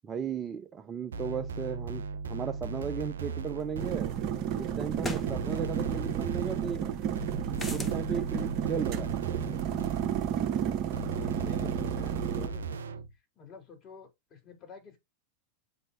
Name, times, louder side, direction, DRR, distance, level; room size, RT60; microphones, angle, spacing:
voice 1, 0.0-4.1 4.5-6.8 7.7-9.2, right 7 dB, 25° right, 0.7 m, -36 dB
sound 1, 1.1-4.4 5.3-10.4 10.9-13.1, right 4 dB, 65° right, 0.8 m, -38 dB
sound 2, 3.6-3.7 5.0-5.3 7.5-8.0, left 2 dB, 10° left, 1.4 m, -36 dB
sound 3, 3.8-12.5, right 9 dB, 40° right, 1.1 m, -32 dB
voice 2, 11.1-13.0 13.4-15.0, left 4 dB, 30° left, 3.9 m, -50 dB
8.5 x 5.4 x 2.8 m
figure-of-eight pair, 90°, 0 cm